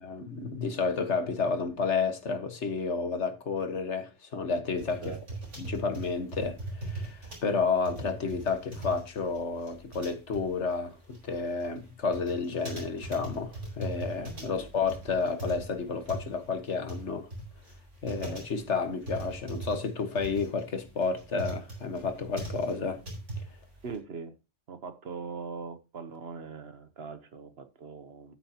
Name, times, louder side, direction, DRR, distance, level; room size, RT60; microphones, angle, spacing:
voice 1, 0.0-5.1 5.6-17.3 18.0-23.0, left 4 dB, 70° left, 1.7 m, -31 dB
sound 1, 4.8-24.0, right 2 dB, 80° right, 4.5 m, -40 dB
voice 2, 23.8-24.4 24.7-28.4, right 5 dB, 60° right, 1.2 m, -41 dB
11.5 x 9.1 x 2.9 m
omnidirectional pair, 1.2 m